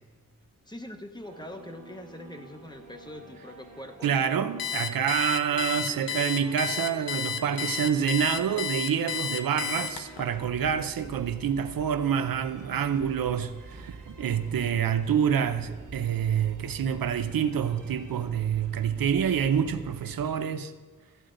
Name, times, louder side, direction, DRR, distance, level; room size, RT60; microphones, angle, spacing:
voice 1, 0.7-4.3, left 1 dB, 15° left, 0.7 m, -43 dB
sound 1, 1.2-20.4, right 3 dB, 60° right, 1.3 m, -47 dB
voice 2, 4.0-20.7, right 8 dB, 80° right, 0.6 m, -27 dB
Alarm, 4.6-10.2, left 9 dB, 80° left, 0.7 m, -32 dB
13.5 x 7.9 x 3.8 m
wide cardioid pair, 150°, 34 cm